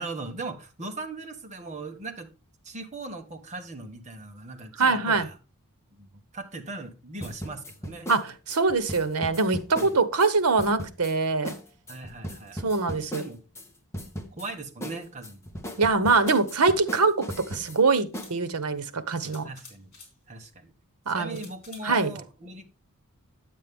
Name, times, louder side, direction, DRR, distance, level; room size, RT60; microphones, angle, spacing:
voice 1, 0.0-2.3 2.6-5.4 5.9-8.1 9.7-9.9 11.9-12.6 13.1-13.4 14.3-15.4 19.2-19.9 20.3-20.7 21.1-22.6, right 2 dB, 30° right, 1.3 m, -39 dB
voice 2, 4.8-5.3 8.1-11.5 12.6-13.2 15.8-19.5 21.1-21.4 21.8-22.1, right 4 dB, 90° right, 1.0 m, -24 dB
sound 1, 7.2-10.3 10.6-11.1 11.4-11.6 11.9-13.7 13.9-14.5 14.8-17.8 18.1-18.3, equal, 10° left, 1.1 m, -37 dB
Toothpick Holder Shacking, 16.1-16.4 17.6-17.7 18.1-18.4 19.2-20.2 21.3-22.0, left 4 dB, 45° left, 4.2 m, -49 dB
9.7 x 7.5 x 3.5 m
head